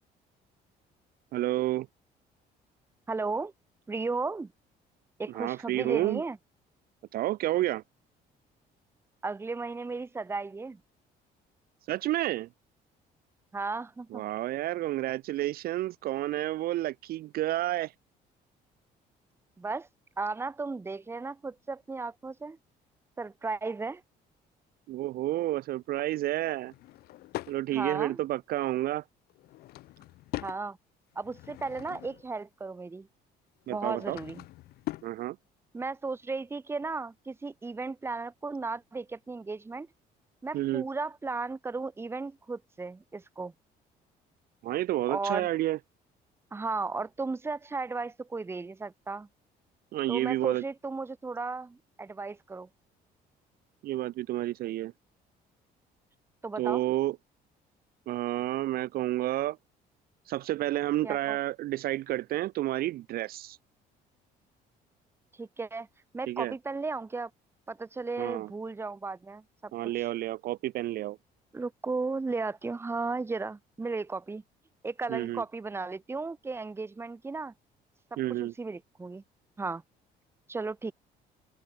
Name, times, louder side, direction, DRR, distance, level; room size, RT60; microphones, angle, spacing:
voice 1, 1.3-1.9 5.3-6.2 7.1-7.8 11.9-12.5 14.1-17.9 24.9-26.7 27.5-29.0 33.7-34.2 35.0-35.4 40.5-40.8 44.6-45.8 49.9-50.6 53.8-54.9 56.6-57.2 58.1-59.6 60.3-63.6 66.3-66.5 68.2-68.5 69.7-71.2 75.1-75.4 78.2-78.5, right 15 dB, 65° right, 0.5 m, -30 dB
voice 2, 3.1-3.5 3.9-4.5 5.2-6.4 9.2-10.8 13.5-14.2 19.6-19.9 20.2-22.6 23.2-24.0 27.7-28.2 30.4-30.8 31.2-33.1 33.7-34.4 35.7-39.9 40.4-43.5 45.1-45.5 46.5-49.3 50.1-52.7 56.4-56.8 61.0-61.4 65.4-65.9 66.1-67.3 67.7-70.0 71.5-74.4 74.8-77.5 78.1-79.2 79.6-79.8 80.5-80.9, right 3 dB, 15° right, 0.7 m, -35 dB
Drawer open or close / Wood, 26.6-27.6 29.3-30.6 31.1-32.3 33.6-35.1, left 17 dB, 65° left, 0.4 m, -42 dB
open air
cardioid pair, 110°, 17 cm